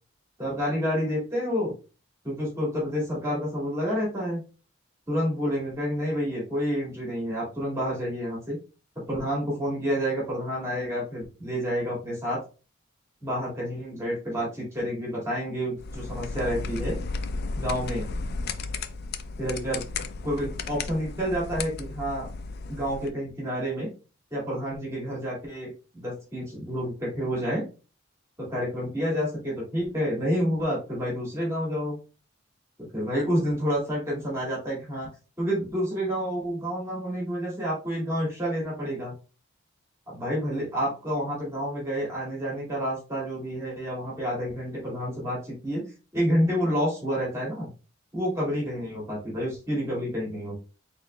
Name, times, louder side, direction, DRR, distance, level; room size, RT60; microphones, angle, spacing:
voice 1, 0.4-1.7 2.2-4.4 5.1-8.6 9.1-12.4 13.2-17.0 17.6-18.1 19.4-19.9 20.2-22.3 22.7-23.9 24.3-27.6 28.4-32.0 32.9-35.1 35.4-39.1 40.1-45.9 46.1-47.7 48.1-50.6, equal, 15° right, -5 dB, 2.0 m, -29 dB
sound 1, 15.8-23.1, left 3 dB, 55° left, 0.4 m, -34 dB
4.2 x 3.9 x 2.2 m, 0.33 s
head